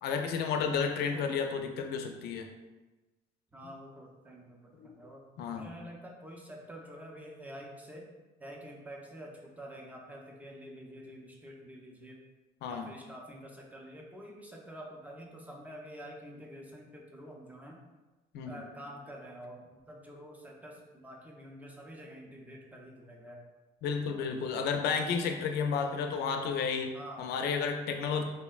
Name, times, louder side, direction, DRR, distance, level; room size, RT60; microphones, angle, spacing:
voice 1, 0.0-2.5 4.7-4.9 5.4-5.7 12.6-12.9 18.3-18.6 23.8-28.2, left 6 dB, 75° left, 5 dB, 0.4 m, -32 dB
voice 2, 3.5-5.2 5.5-8.1 8.4-12.2 12.7-17.8 18.4-23.4 24.1-24.7 25.7-26.1 26.9-27.3, equal, 10° right, -1 dB, 0.5 m, -48 dB
3.5 x 2.1 x 2.3 m, 1.1 s
cardioid pair, 110°, 17 cm